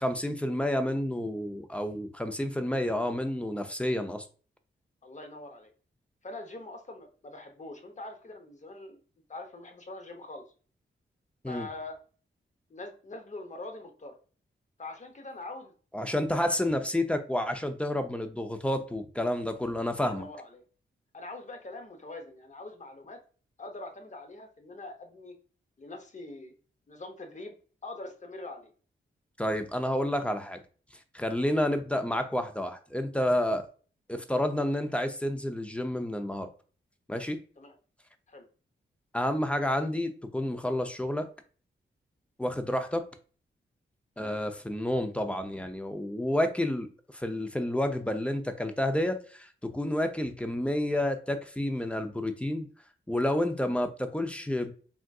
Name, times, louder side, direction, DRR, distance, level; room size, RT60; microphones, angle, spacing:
voice 1, 0.0-4.2 11.4-11.7 15.9-20.3 29.4-30.6 31.1-33.7 34.1-36.5 37.1-37.4 39.1-41.3 42.4-43.1 44.2-52.7 53.1-54.7, left 1 dB, 5° left, 0.5 m, -30 dB
voice 2, 5.0-5.7 6.2-9.0 9.3-10.4 11.5-12.0 12.7-14.2 14.8-15.7 19.9-20.6 21.1-23.2 23.6-25.4 25.8-26.5 26.9-27.5 27.8-28.7 37.6-37.8 38.3-38.5 44.2-44.4, left 2 dB, 35° left, 0.8 m, -43 dB
3.6 x 2.5 x 2.3 m
cardioid pair, 60°, 20 cm